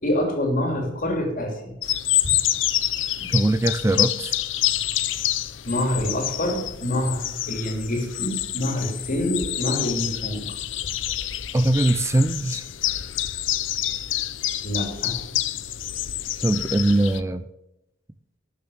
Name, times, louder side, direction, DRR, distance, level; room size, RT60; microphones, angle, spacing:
voice 1, 0.0-1.7 2.2-2.3 5.6-10.5 14.6-15.2, left 1 dB, 45° left, 2 dB, 3.2 m, -26 dB
sound 1, 1.8-17.2, left 13 dB, 80° left, 0.7 m, -27 dB
voice 2, 3.3-4.4 11.5-12.6 16.4-17.4, right 1 dB, 15° right, 12 dB, 0.4 m, -21 dB
12.5 x 7.1 x 7.0 m, 0.88 s
head